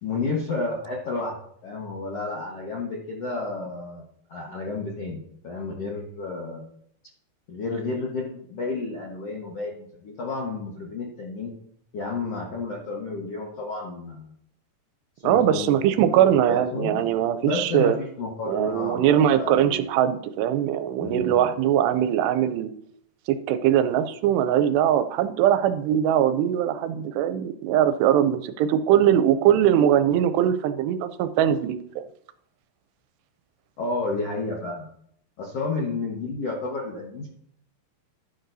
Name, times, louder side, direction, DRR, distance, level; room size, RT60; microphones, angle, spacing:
voice 1, 0.0-1.3 1.6-4.0 4.3-6.6 7.5-11.5 11.9-14.3 15.2-16.0 16.5-17.0 17.4-19.9 21.0-21.5 33.8-34.9 35.4-37.3, left 3 dB, 65° left, -2 dB, 1.5 m, -31 dB
voice 2, 15.2-18.0 18.5-22.7 23.3-32.0, right 10 dB, 85° right, 11 dB, 2.7 m, -21 dB
12.0 x 10.0 x 2.7 m, 0.68 s
omnidirectional pair, 4.8 m